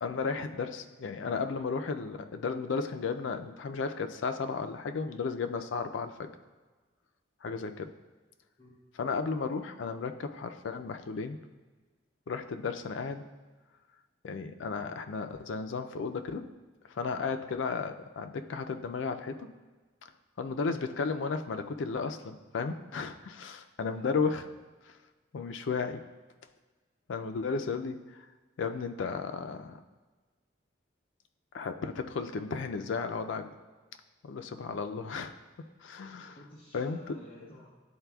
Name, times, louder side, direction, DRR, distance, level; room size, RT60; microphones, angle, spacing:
voice 1, 0.0-6.3 7.4-7.9 9.0-11.4 12.3-13.2 14.2-16.4 16.9-19.5 20.4-24.4 24.9-25.0 25.3-26.0 27.1-28.2 28.6-29.8 31.5-33.5 34.2-35.3 35.8-36.4 36.7-37.0 37.4-37.5, left 5 dB, 80° left, 7 dB, 0.4 m, -34 dB
voice 2, 36.4-37.7, equal, 25° left, -6 dB, 0.7 m, -53 dB
10.5 x 4.0 x 2.3 m, 1.3 s
head